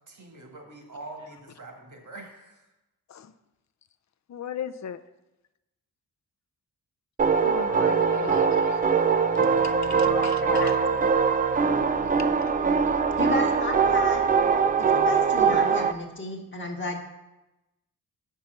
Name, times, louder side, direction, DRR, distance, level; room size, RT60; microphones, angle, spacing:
voice 1, 0.1-2.7, right 2 dB, 50° right, 2 dB, 1.8 m, -44 dB
voice 2, 4.3-5.0 7.4-8.8 9.6-10.7 12.2-12.5, left 8 dB, 50° left, 12 dB, 0.5 m, -37 dB
sound 1, 7.2-15.9, right 5 dB, 25° right, 0.3 m, -22 dB
voice 3, 10.0-10.7 13.2-14.3 14.8-17.0, left 1 dB, 30° left, 0 dB, 1.1 m, -32 dB
5.8 x 5.6 x 6.3 m, 0.99 s
cardioid pair, 85°, 38 cm